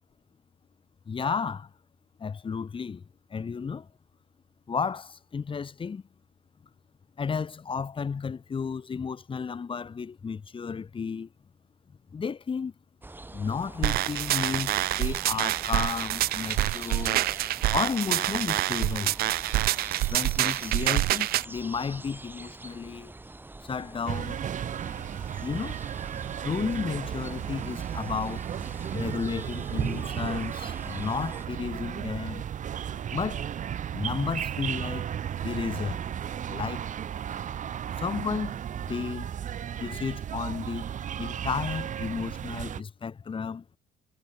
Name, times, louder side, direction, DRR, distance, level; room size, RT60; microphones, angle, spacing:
voice 1, 1.1-1.7 2.2-3.0 3.3-3.9 4.7-6.0 7.2-11.3 12.1-12.7 13.3-17.2 17.7-19.1 20.1-23.1 23.6-24.4 25.4-25.8 26.4-28.5 28.9-32.4 33.1-33.5 33.9-35.1 35.4-36.0 36.5-36.8 38.0-38.6 38.9-39.3 39.8-40.9 41.2-43.6, left 5 dB, 30° left, 2.5 m, -32 dB
sound 1, 13.0-31.5, right 2 dB, 10° right, 2.3 m, -44 dB
sound 2, 13.8-21.4, right 16 dB, 65° right, 0.4 m, -27 dB
sound 3, 24.1-42.8, right 9 dB, 50° right, 1.8 m, -34 dB
cardioid pair, 110°, 17 cm